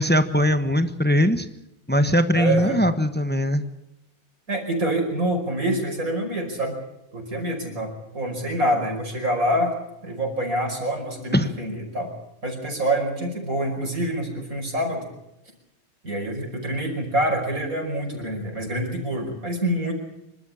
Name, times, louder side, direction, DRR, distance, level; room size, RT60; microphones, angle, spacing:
voice 1, 0.0-1.5 1.9-3.6 11.3-11.5, equal, 10° left, 10 dB, 0.4 m, -20 dB
voice 2, 2.4-2.8 4.5-6.8 7.1-9.7 10.0-12.1 12.4-15.0 16.0-19.9, right 1 dB, 40° right, 2 dB, 5.6 m, -26 dB
27.0 x 13.0 x 8.6 m, 0.88 s
omnidirectional pair, 2.4 m